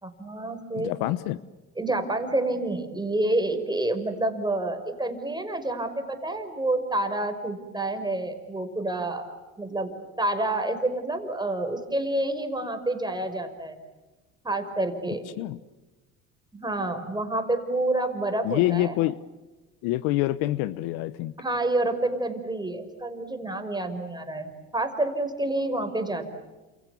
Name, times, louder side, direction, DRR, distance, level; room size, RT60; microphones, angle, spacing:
voice 1, 0.0-0.9 1.8-9.9 10.2-13.8 14.4-15.3 16.5-19.0 21.4-26.3, right 2 dB, 10° right, 7 dB, 5.4 m, -28 dB
voice 2, 0.8-1.4 15.4-15.6 18.4-19.2 19.8-21.3, left 16 dB, 80° left, 16 dB, 1.0 m, -26 dB
29.5 x 28.0 x 7.1 m, 1.2 s
supercardioid pair, 80°, 38 cm